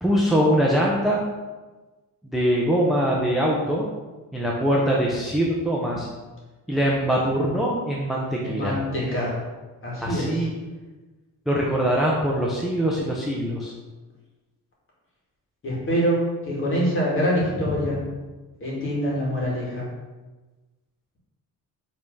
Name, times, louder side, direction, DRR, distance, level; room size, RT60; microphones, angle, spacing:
voice 1, 0.0-1.2 2.3-3.9 4.3-6.1 6.7-8.8 10.0-10.5 11.5-13.7 17.6-17.7, equal, ahead, -3 dB, 0.4 m, -23 dB
voice 2, 8.4-9.3 9.8-10.5 15.6-16.2 16.4-18.0 18.6-19.9, equal, 35° left, -5 dB, 2.0 m, -25 dB
5.2 x 3.5 x 5.2 m, 1.2 s
cardioid pair, 180°, 36 cm